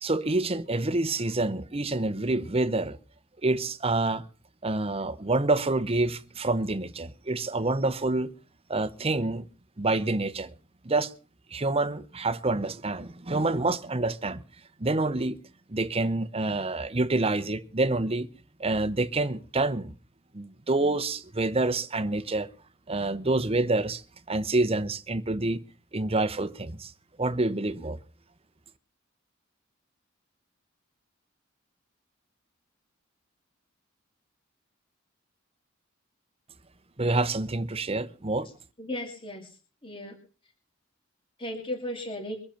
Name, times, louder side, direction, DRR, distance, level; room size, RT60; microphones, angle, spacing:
voice 1, 0.0-3.0 3.4-4.2 4.6-8.3 8.7-9.5 9.8-10.5 10.8-11.1 11.5-14.4 14.8-15.4 15.7-18.3 18.6-19.9 20.3-22.5 22.9-24.0 24.3-25.6 25.9-26.9 27.2-28.0 37.0-38.5, right 2 dB, 30° right, 1.0 m, -27 dB
voice 2, 38.8-39.5 39.8-40.2 41.4-42.4, left 1 dB, 25° left, 2.7 m, -35 dB
23.5 x 8.0 x 5.9 m
head